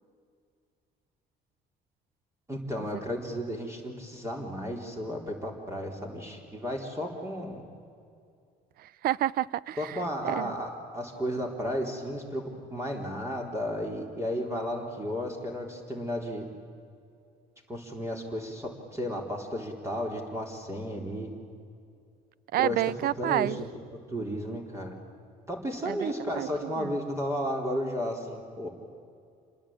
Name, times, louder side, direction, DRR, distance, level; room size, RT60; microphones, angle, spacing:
voice 1, 2.5-7.6 9.8-12.4 12.7-16.5 17.7-21.3 22.6-22.8 23.2-23.7 24.1-25.0 25.5-28.7, equal, 15° right, 1 dB, 3.9 m, -33 dB
voice 2, 8.8-10.6 22.5-23.6 25.9-27.0, right 13 dB, 65° right, 22 dB, 0.6 m, -30 dB
27.5 x 21.0 x 8.9 m, 2.4 s
cardioid pair, 110°, 17 cm